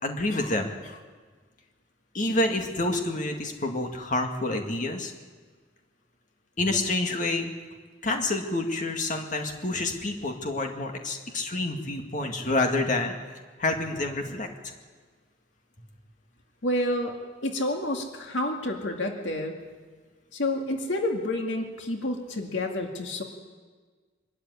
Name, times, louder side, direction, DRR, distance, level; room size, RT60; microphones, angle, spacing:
voice 1, 0.0-1.0 2.1-5.1 6.6-7.5 8.0-13.2 13.6-14.5, left 2 dB, 45° left, 3 dB, 2.1 m, -28 dB
voice 2, 16.6-17.2 17.4-19.6 20.3-23.2, left 1 dB, 80° left, 2 dB, 2.1 m, -29 dB
23.5 x 13.0 x 9.7 m, 1.5 s
head